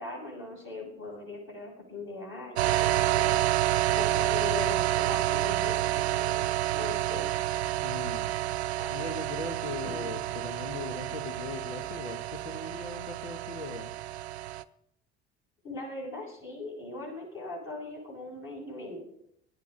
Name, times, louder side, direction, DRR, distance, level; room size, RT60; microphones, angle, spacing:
voice 1, 0.0-3.5 3.9-7.2 15.6-19.1, left 3 dB, 40° left, -3 dB, 7.4 m, -40 dB
sound 1, 2.6-14.6, right 14 dB, 80° right, 0.5 m, -29 dB
Conversation, 4.6-13.1, left 1 dB, 65° left, 6.8 m, -53 dB
voice 2, 7.8-8.3 8.9-13.9, left 3 dB, 85° left, 13 dB, 1.0 m, -39 dB
18.5 x 11.0 x 3.8 m, 0.73 s
figure-of-eight pair, 60°, 32 cm